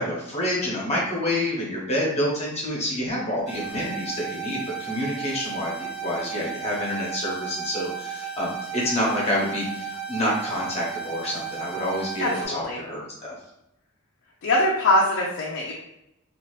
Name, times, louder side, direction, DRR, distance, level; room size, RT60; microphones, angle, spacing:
voice 1, 0.0-13.4, left 1 dB, 30° left, -5 dB, 1.0 m, -28 dB
sound 1, 3.5-12.5, right 7 dB, 55° right, 1.1 m, -34 dB
voice 2, 12.2-12.8 14.4-15.7, left 1 dB, 55° left, -3 dB, 0.5 m, -22 dB
2.8 x 2.4 x 3.1 m, 0.87 s
head